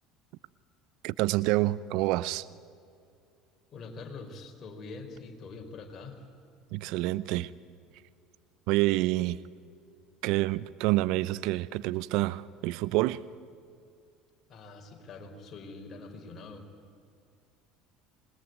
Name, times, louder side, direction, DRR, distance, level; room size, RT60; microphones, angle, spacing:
voice 1, 1.0-2.4 6.7-7.5 8.7-9.4 10.2-13.2, right 18 dB, 65° right, 0.7 m, -27 dB
voice 2, 3.7-6.2 14.5-16.7, left 3 dB, 40° left, 5.0 m, -44 dB
26.5 x 20.5 x 9.4 m
hypercardioid pair, 70°, 0 cm